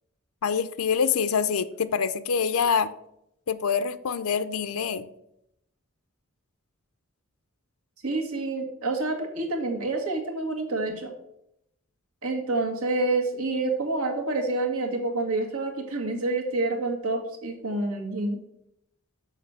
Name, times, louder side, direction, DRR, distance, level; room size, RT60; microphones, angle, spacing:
voice 1, 0.4-2.9 3.5-5.0, left 6 dB, 80° left, 13 dB, 0.5 m, -25 dB
voice 2, 8.0-11.2 12.2-18.4, right 2 dB, 85° right, 3 dB, 1.7 m, -28 dB
6.5 x 5.9 x 6.7 m, 0.80 s
head